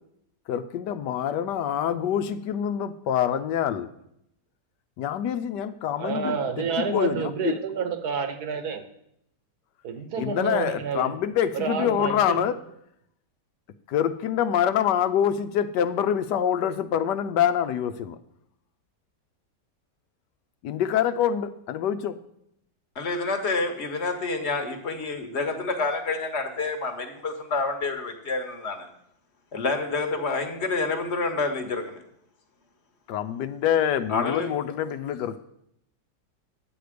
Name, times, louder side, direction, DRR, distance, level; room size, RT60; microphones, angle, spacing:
voice 1, 0.5-3.9 5.0-7.5 10.2-12.6 13.9-18.2 20.6-22.2 33.1-35.4, left 9 dB, 80° left, 11 dB, 1.2 m, -26 dB
voice 2, 6.0-8.9 9.8-11.1 11.5-12.5, right 6 dB, 65° right, 8 dB, 1.5 m, -29 dB
voice 3, 22.9-28.9 29.5-32.0 34.1-34.5, left 3 dB, 40° left, 6 dB, 1.3 m, -28 dB
10.0 x 8.0 x 5.0 m, 0.75 s
omnidirectional pair, 1.9 m